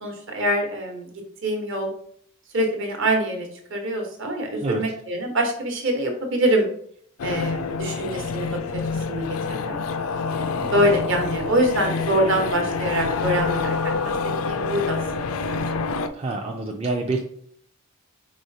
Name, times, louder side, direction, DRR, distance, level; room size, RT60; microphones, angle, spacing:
voice 1, 0.0-1.1 1.4-1.9 2.5-6.7 7.2-8.8 9.1-9.8 10.3-14.1 14.5-15.0 15.5-15.6, right 1 dB, 60° right, 2 dB, 1.0 m, -24 dB
sound 1, 7.2-16.1, left 4 dB, 70° left, 0.4 m, -27 dB
voice 2, 16.1-17.2, right 2 dB, 30° right, 2 dB, 0.4 m, -27 dB
4.9 x 3.9 x 2.7 m, 0.64 s
head